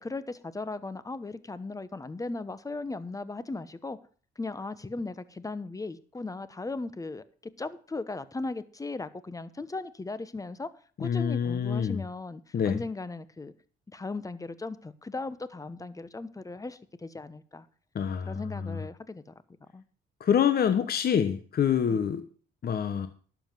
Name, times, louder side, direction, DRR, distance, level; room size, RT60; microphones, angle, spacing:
voice 1, 0.0-4.0 4.4-7.2 7.6-10.7 11.0-13.5 13.9-17.7 18.3-19.2 19.7-19.8 21.8-22.0, left 3 dB, 15° left, 1.0 m, -37 dB
voice 2, 11.0-12.0 12.5-12.8 17.9-18.8 20.2-22.2 22.6-23.1, left 8 dB, 50° left, 1.1 m, -26 dB
11.5 x 7.2 x 7.5 m
cardioid pair, 90°, 20 cm